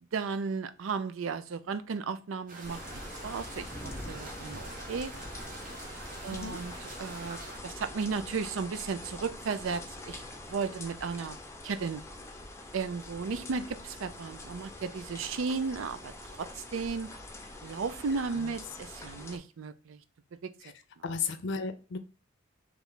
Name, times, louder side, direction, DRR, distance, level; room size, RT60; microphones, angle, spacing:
voice 1, 0.1-5.1 6.2-10.2 10.5-11.4 11.6-12.0 12.7-16.1 16.4-17.1 17.6-20.0 20.4-20.5, right 5 dB, 85° right, 0.4 m, -35 dB
sound 1, 2.5-7.6, right 3 dB, 45° right, 0.9 m, -46 dB
sound 2, 2.6-19.4, left 2 dB, 15° left, 0.6 m, -44 dB
voice 2, 21.0-22.0, left 5 dB, 65° left, 0.5 m, -34 dB
3.3 x 3.0 x 3.8 m
head